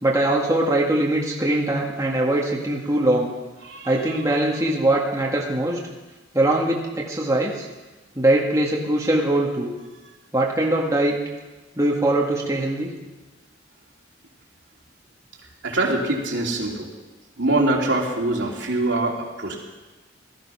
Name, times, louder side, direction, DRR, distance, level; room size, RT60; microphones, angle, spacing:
voice 1, 0.0-3.3 3.8-5.8 6.3-7.7 8.2-9.7 10.3-11.2 11.8-12.9, right 1 dB, 15° right, -2 dB, 1.8 m, -21 dB
voice 2, 15.6-16.9 17.4-19.5, right 2 dB, 70° right, -1 dB, 3.0 m, -23 dB
17.5 x 13.0 x 5.8 m, 1.2 s
head